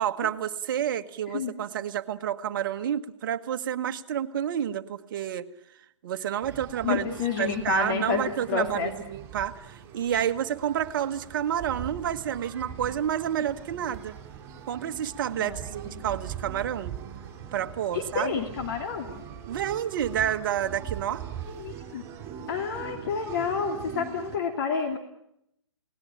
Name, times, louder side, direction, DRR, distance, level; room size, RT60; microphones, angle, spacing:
voice 1, 0.0-5.5 6.0-7.0 7.4-14.2 14.7-17.0 17.5-18.3 19.5-21.2, right 10 dB, 45° right, 9 dB, 1.4 m, -29 dB
sound 1, 6.4-24.4, right 9 dB, 15° right, 4.4 m, -41 dB
voice 2, 6.8-8.9 15.4-15.6 15.9-16.0 17.9-19.2 21.5-22.1 22.5-25.0, left 6 dB, 45° left, 4 dB, 2.7 m, -29 dB
29.0 x 19.0 x 8.9 m, 0.79 s
figure-of-eight pair, 130°, 15 cm